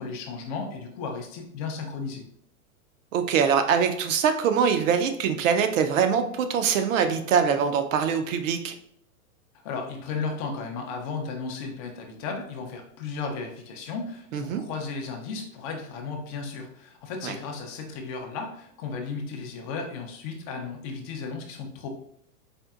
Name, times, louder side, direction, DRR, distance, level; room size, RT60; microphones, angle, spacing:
voice 1, 0.0-2.2 9.6-21.9, left 4 dB, 25° left, 3 dB, 0.4 m, -34 dB
voice 2, 3.1-8.8 14.3-14.6 17.2-17.3, right 7 dB, 60° right, 8 dB, 0.6 m, -23 dB
4.3 x 2.6 x 2.4 m, 0.68 s
hypercardioid pair, 135°, 45 cm